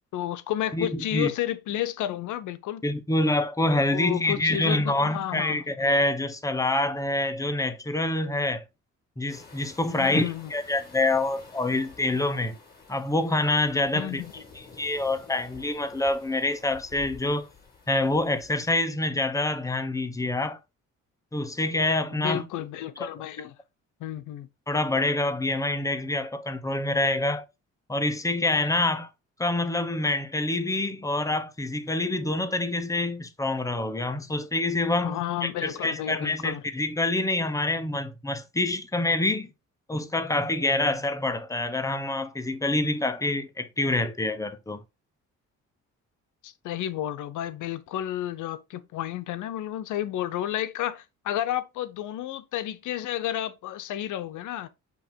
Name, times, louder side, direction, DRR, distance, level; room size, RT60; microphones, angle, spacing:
voice 1, 0.1-2.8 3.9-5.6 9.9-10.5 13.9-14.3 22.1-23.5 24.0-24.5 35.0-36.6 46.4-54.7, left 12 dB, 80° left, 0.7 m, -31 dB
voice 2, 0.7-1.3 2.8-8.6 9.2-12.5 12.9-14.2 14.5-17.5 17.9-20.6 21.3-22.5 23.0-23.1 24.7-27.4 27.9-29.1 29.4-39.5 39.9-44.8, left 2 dB, 10° left, 1.0 m, -26 dB
sound 1, 9.3-18.7, left 4 dB, 30° left, 3.9 m, -50 dB
8.1 x 2.9 x 4.5 m
cardioid pair, 90°, 30 cm